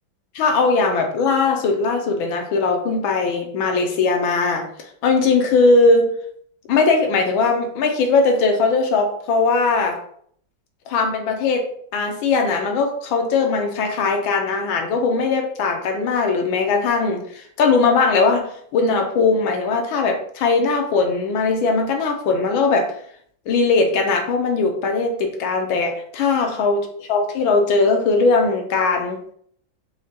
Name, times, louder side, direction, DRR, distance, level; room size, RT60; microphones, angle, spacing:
voice 1, 0.3-4.6 5.0-6.1 6.7-10.0 10.9-22.9 23.5-29.2, left 4 dB, 80° left, 3 dB, 1.5 m, -19 dB
4.8 x 2.8 x 2.8 m, 0.63 s
omnidirectional pair, 2.2 m